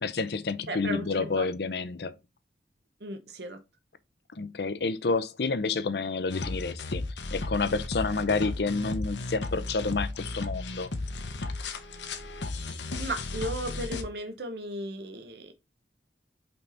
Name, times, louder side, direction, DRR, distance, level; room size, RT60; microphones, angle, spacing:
voice 1, 0.0-2.1 4.3-7.0 7.3-10.9, left 4 dB, 65° left, 0.6 m, -29 dB
voice 2, 0.7-1.5 3.0-3.6 13.0-15.5, right 1 dB, 65° right, 1.0 m, -35 dB
sound 1, 6.3-14.0, left 2 dB, 80° left, 1.0 m, -35 dB
5.5 x 4.0 x 4.3 m
head